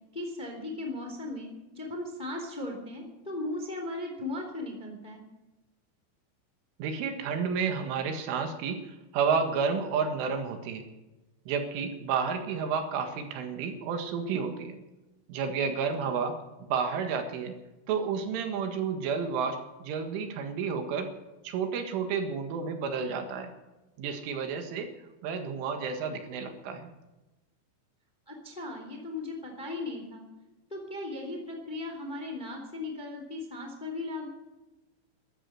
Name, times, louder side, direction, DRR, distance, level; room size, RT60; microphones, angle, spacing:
voice 1, 0.1-5.2 28.3-30.2 30.7-34.3, left 2 dB, 15° left, 3 dB, 2.0 m, -37 dB
voice 2, 6.8-10.8 11.5-14.8 15.3-17.5 17.9-21.1 21.4-23.5 24.0-24.9 25.2-26.9, right 6 dB, 80° right, 6 dB, 4.1 m, -31 dB
14.0 x 14.0 x 6.6 m, 1.0 s
omnidirectional pair, 5.8 m